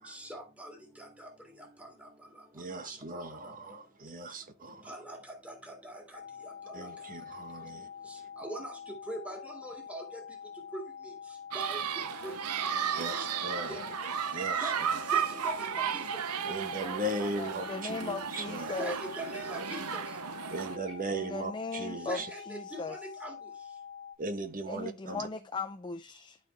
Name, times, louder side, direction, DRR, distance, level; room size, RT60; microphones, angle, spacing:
voice 1, 0.0-3.5 4.6-6.9 7.3-7.4 8.0-10.2 10.7-14.1 14.6-16.2 18.8-20.2 22.0-23.5, right 1 dB, 5° right, 2.1 m, -44 dB
voice 2, 2.5-4.9 6.7-7.9 13.0-13.9 14.3-15.2 16.5-18.8 20.5-22.3 24.2-25.3, right 2 dB, 40° right, 1.1 m, -38 dB
sound 1, 6.1-24.2, left 7 dB, 40° left, 1.5 m, -46 dB
sound 2, 11.5-20.8, right 8 dB, 85° right, 0.6 m, -34 dB
voice 3, 16.4-19.0 21.1-22.2 22.5-23.0 24.7-26.4, left 3 dB, 20° left, 0.4 m, -38 dB
sound 3, 16.8-17.3 17.5-17.6 18.0-21.7 22.0-22.1, right 1 dB, 65° right, 2.5 m, -54 dB
11.5 x 4.6 x 3.3 m
head